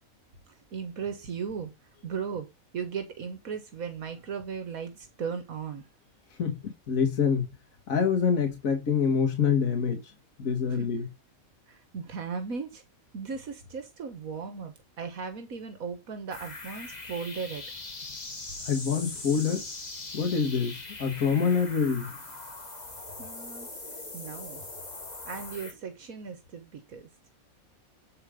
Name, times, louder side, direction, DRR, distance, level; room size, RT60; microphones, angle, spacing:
voice 1, 0.5-1.7 2.0-2.5 2.7-5.9 10.7-10.9 11.7-12.8 13.1-17.6 23.2-23.7 24.1-24.6 25.2-27.1, right 6 dB, 80° right, 1.7 m, -37 dB
voice 2, 6.4-7.5 7.9-10.1 10.4-11.1 18.7-19.6 20.1-22.1, left 6 dB, 75° left, 1.9 m, -26 dB
sound 1, 16.3-25.7, left 2 dB, 30° left, 1.9 m, -41 dB
8.3 x 5.0 x 5.0 m
omnidirectional pair, 1.5 m